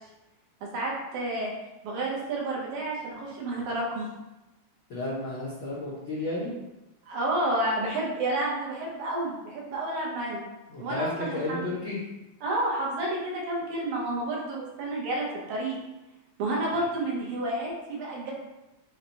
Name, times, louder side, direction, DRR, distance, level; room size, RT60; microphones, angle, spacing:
voice 1, 0.6-1.5 1.8-4.1 7.1-10.4 10.8-11.7 12.4-15.8 16.4-18.3, right 1 dB, 80° right, -3 dB, 2.4 m, -30 dB
voice 2, 4.9-6.5 10.7-12.0, left 2 dB, 80° left, -6 dB, 1.0 m, -32 dB
5.9 x 2.2 x 4.0 m, 1.0 s
omnidirectional pair, 3.3 m